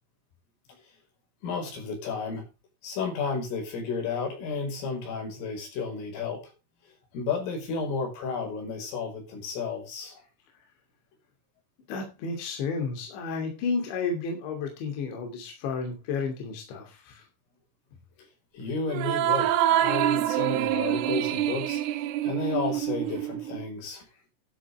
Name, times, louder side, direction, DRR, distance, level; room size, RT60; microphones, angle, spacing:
voice 1, 1.4-2.4 2.8-6.4 7.1-10.2 18.5-24.0, left 4 dB, 85° left, 2 dB, 7.8 m, -32 dB
voice 2, 11.9-17.3, left 4 dB, 65° left, 2 dB, 4.9 m, -32 dB
sound 1, 18.9-23.6, right 12 dB, 90° right, 3.6 m, -26 dB
12.5 x 12.0 x 3.3 m, 0.28 s
omnidirectional pair, 5.6 m